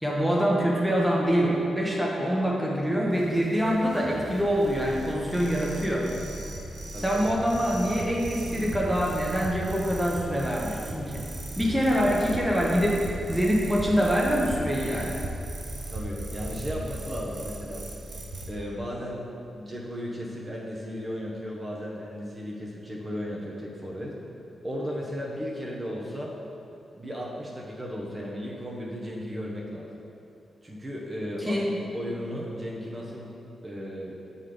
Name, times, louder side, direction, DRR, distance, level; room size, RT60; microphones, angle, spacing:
voice 1, 0.0-6.1 7.0-11.2 11.6-15.2 31.4-31.8, equal, ahead, -4 dB, 1.0 m, -25 dB
sound 1, 3.1-18.5, right 1 dB, 60° right, 0.9 m, -37 dB
voice 2, 6.9-7.2 15.9-17.8 18.5-19.2 19.5-24.2 24.6-26.3 26.9-29.9 30.6-31.6 31.9-33.3 33.6-34.2, equal, 25° right, -4 dB, 1.0 m, -35 dB
7.4 x 4.1 x 5.0 m, 2.7 s
cardioid pair, 90°, 0 cm